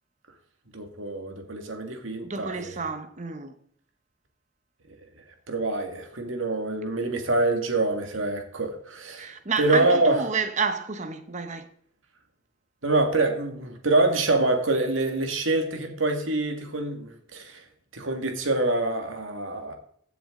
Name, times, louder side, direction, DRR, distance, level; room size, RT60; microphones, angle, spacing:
voice 1, 0.7-2.8 5.5-10.2 12.8-17.6 17.9-19.7, right 2 dB, 75° right, 2.0 m, -26 dB
voice 2, 2.2-3.5 9.2-11.7, right 5 dB, 35° right, 1.0 m, -30 dB
15.5 x 7.0 x 3.8 m
head